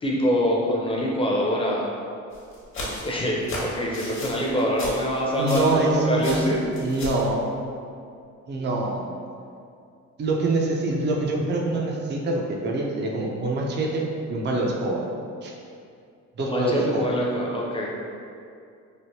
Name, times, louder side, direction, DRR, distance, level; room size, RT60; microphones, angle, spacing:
voice 1, 0.0-1.9 3.0-6.6 16.4-17.9, equal, 20° left, -3 dB, 0.6 m, -25 dB
sound 1, 2.3-5.9 6.2-7.3, left 1 dB, 45° left, 0.9 m, -35 dB
voice 2, 5.3-6.4 6.8-7.5 8.5-9.0 10.2-15.0 15.4-15.5 16.4-17.1, right 2 dB, 35° right, 0 dB, 0.5 m, -25 dB
3.3 x 2.5 x 2.7 m, 2.4 s
cardioid pair, 90°, 30 cm